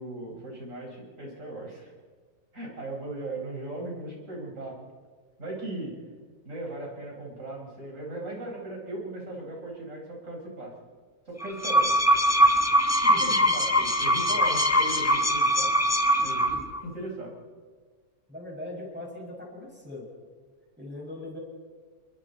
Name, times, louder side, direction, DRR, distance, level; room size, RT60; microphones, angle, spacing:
voice 1, 0.0-1.9 2.5-4.8 5.4-6.0 6.5-10.7 11.3-12.0 13.0-15.7 16.2-17.3, right 2 dB, 50° right, -1 dB, 5.2 m, -38 dB
sound 1, 11.4-16.8, equal, 10° left, 0.8 m, -22 dB
voice 2, 18.3-20.1 20.8-21.4, left 1 dB, 5° right, -2 dB, 5.8 m, -40 dB
28.5 x 22.0 x 4.2 m, 1.5 s
omnidirectional pair, 1.8 m